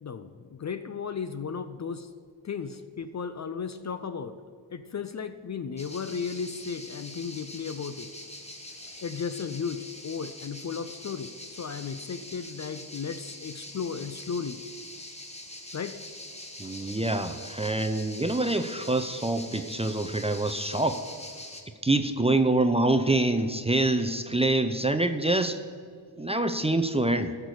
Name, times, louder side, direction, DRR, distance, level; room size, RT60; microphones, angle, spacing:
voice 1, 0.0-2.1 2.4-4.3 4.7-8.1 9.0-11.3 11.6-14.6 15.7-16.0, left 6 dB, 35° left, 10 dB, 0.5 m, -35 dB
sound 1, 5.8-21.6, left 1 dB, 15° left, 1.3 m, -44 dB
voice 2, 16.6-21.0 21.8-25.6 26.2-27.4, right 2 dB, 15° right, 8 dB, 0.5 m, -25 dB
12.5 x 6.7 x 4.7 m, 2.2 s
cardioid pair, 65°, 48 cm